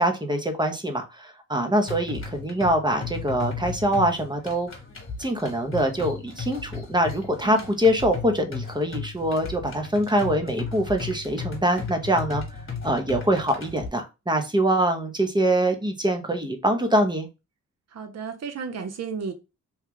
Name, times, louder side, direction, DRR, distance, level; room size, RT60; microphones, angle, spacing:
voice 1, 0.0-4.7 5.2-12.4 12.8-17.3, right 1 dB, 15° right, 0.7 m, -24 dB
sound 1, 1.9-13.9, left 5 dB, 40° left, 1.2 m, -36 dB
voice 2, 17.9-19.3, right 5 dB, 50° right, 0.7 m, -33 dB
3.0 x 2.3 x 3.6 m
cardioid pair, 80°, 32 cm